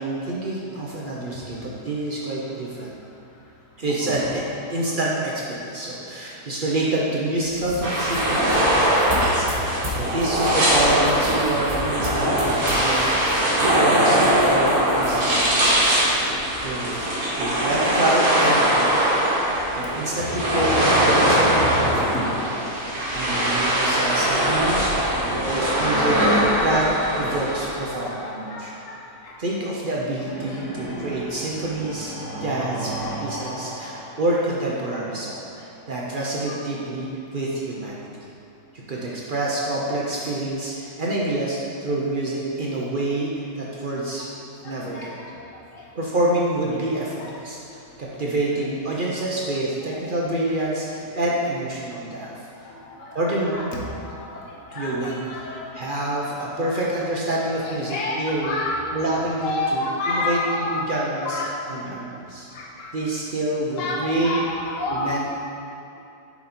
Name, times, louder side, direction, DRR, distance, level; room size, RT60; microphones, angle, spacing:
voice 1, 0.0-2.9 3.8-4.4 4.7-13.2 13.7-17.0 17.3-19.2 19.7-21.7 22.9-24.9 25.2-26.2 26.6-26.9 27.2-28.7 29.4-32.1 32.4-32.9 33.2-37.1 37.3-38.1 38.7-44.2 44.6-45.2 45.9-47.6 48.0-52.3 53.1-53.6 54.7-55.2 55.8-58.5 58.9-61.4 61.7-62.5 62.9-64.4 64.9-65.3, right 2 dB, 50° right, -4 dB, 0.6 m, -27 dB
voice 2, 3.9-4.6 4.8-5.3 20.6-20.8 21.2-21.3 22.1-22.3 24.5-24.6 25.5-26.1 27.5-27.6 28.0-28.9 29.2-29.3 36.5-36.6 44.9-45.1 47.2-47.3 49.9-50.0 52.6-52.7 53.0-54.4 54.7-55.6 56.0-56.3 56.6-56.8 57.4-58.8 59.1-60.8 61.2-61.7 62.5-62.9 63.8-65.1, left 2 dB, 60° left, -3 dB, 1.3 m, -30 dB
sound 1, 7.4-17.1, left 1 dB, 25° right, 1.2 m, -35 dB
sound 2, 7.8-27.7, right 1 dB, 70° right, 1.8 m, -21 dB
sound 3, 25.2-28.9 30.2-34.9, equal, 75° left, 2.2 m, -29 dB
6.9 x 4.1 x 4.2 m, 2.8 s
omnidirectional pair, 1.6 m